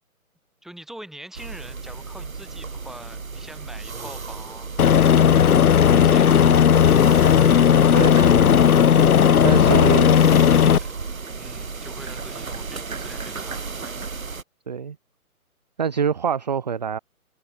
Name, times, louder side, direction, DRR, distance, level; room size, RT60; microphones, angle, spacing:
voice 1, 0.6-6.6 9.3-10.9 11.4-13.9, right 1 dB, ahead, 4.2 m, -44 dB
sound 1, 1.3-14.4, right 4 dB, 65° right, 7.1 m, -34 dB
Aircraft, 4.8-10.8, left 8 dB, 75° left, 0.6 m, -15 dB
voice 2, 7.9-8.6 9.4-10.5 14.7-15.0 15.8-17.0, right 7 dB, 30° right, 0.6 m, -26 dB
open air
figure-of-eight pair, 140°, 44 cm